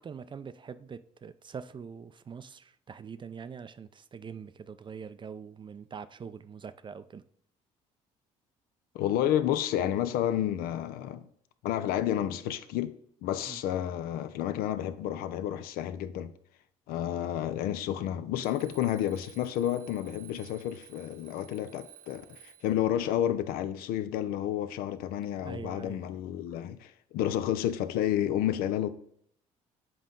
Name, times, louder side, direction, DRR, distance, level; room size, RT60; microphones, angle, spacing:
voice 1, 0.0-7.2 13.5-13.6 25.4-26.0, right 6 dB, 30° right, 0.4 m, -43 dB
voice 2, 8.9-11.3 11.6-12.9 13.2-16.3 16.9-28.9, left 11 dB, 70° left, 0.5 m, -30 dB
Alarm, 18.4-22.8, right 9 dB, 65° right, 1.0 m, -54 dB
7.6 x 4.0 x 3.7 m
hypercardioid pair, 60°, 16 cm